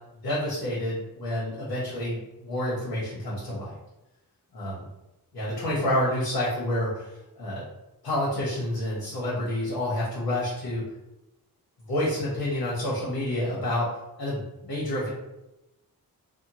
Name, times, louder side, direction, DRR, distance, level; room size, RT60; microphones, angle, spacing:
voice 1, 0.2-3.8 4.5-4.9 5.3-7.6 8.0-10.8 11.9-13.9 14.2-15.1, left 1 dB, 90° left, -6 dB, 1.0 m, -29 dB
2.7 x 2.1 x 2.9 m, 0.93 s
wide cardioid pair, 115°, 37 cm